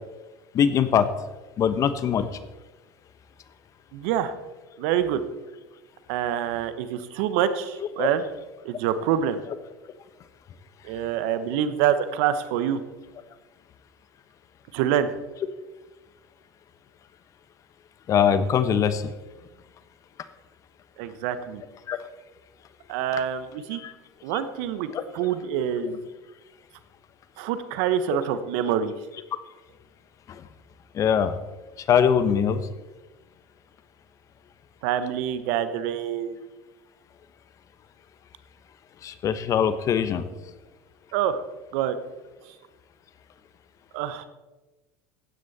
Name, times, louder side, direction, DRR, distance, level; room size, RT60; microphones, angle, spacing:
voice 1, 0.5-1.1 1.6-2.3 8.0-8.1 18.1-19.1 21.9-22.0 23.7-23.9 24.9-25.0 25.8-26.0 30.9-31.3 31.9-32.6 39.0-40.2, left 8 dB, 45° left, 13 dB, 1.1 m, -22 dB
voice 2, 3.9-4.3 4.8-5.2 6.1-8.2 8.6-9.4 10.8-12.8 14.7-15.1 21.0-21.6 22.9-23.8 24.2-26.0 27.4-28.9 34.8-36.4 41.1-41.4 41.7-42.0 42.4-42.5 43.9-44.3, right 9 dB, 70° right, 12 dB, 1.0 m, -26 dB
15.0 x 9.7 x 4.3 m, 1.1 s
hypercardioid pair, 80°, 8 cm